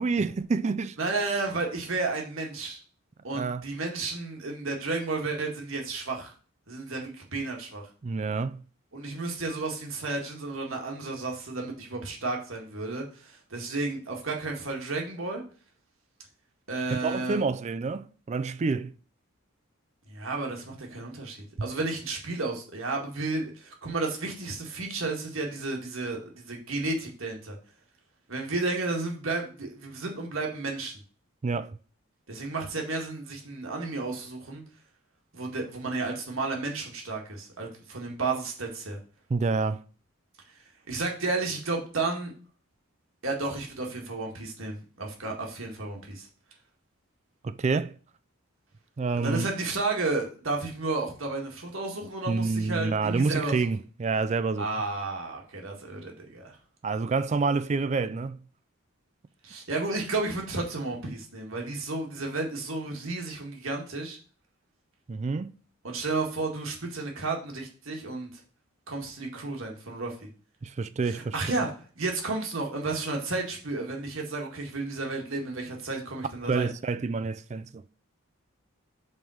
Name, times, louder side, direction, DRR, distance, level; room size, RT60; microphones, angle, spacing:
voice 1, 0.0-1.0 3.3-3.6 8.0-8.6 16.9-18.9 31.4-31.8 39.3-39.8 47.4-48.0 49.0-49.5 52.3-54.7 56.8-58.4 65.1-65.6 70.6-71.4 76.5-77.8, right 4 dB, 35° right, 0.3 m, -28 dB
voice 2, 1.0-2.8 3.2-6.3 6.7-7.8 8.9-15.4 16.7-17.5 20.1-27.6 28.3-30.9 32.3-34.6 35.3-39.0 40.9-42.3 43.2-46.3 49.1-53.7 54.6-56.6 59.4-64.2 65.8-68.4 68.9-70.1 71.0-71.7 72.0-76.7, right 3 dB, 70° right, 1.8 m, -32 dB
5.4 x 4.6 x 6.3 m
head